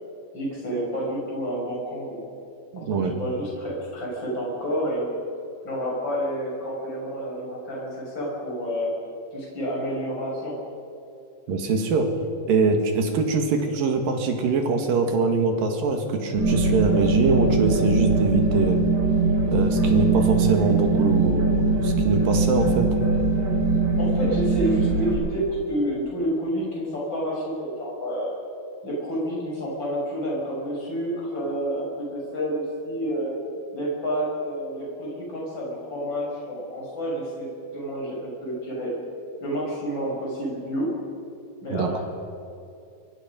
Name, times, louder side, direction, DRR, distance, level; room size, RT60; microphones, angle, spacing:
voice 1, 0.3-2.2 2.8-5.1 5.6-8.9 9.3-10.6 24.0-28.4 28.8-33.3 33.7-37.5 37.7-38.9 39.4-41.0 41.6-42.0, equal, 30° left, -3 dB, 7.2 m, -29 dB
voice 2, 2.7-3.2 11.5-12.1 12.5-18.8 19.5-22.9 41.7-42.0, right 4 dB, 70° right, 4 dB, 3.6 m, -23 dB
sound 1, 16.4-25.1, right 3 dB, 50° right, 7.2 m, -21 dB
25.0 x 23.0 x 5.4 m, 2.7 s
omnidirectional pair, 4.3 m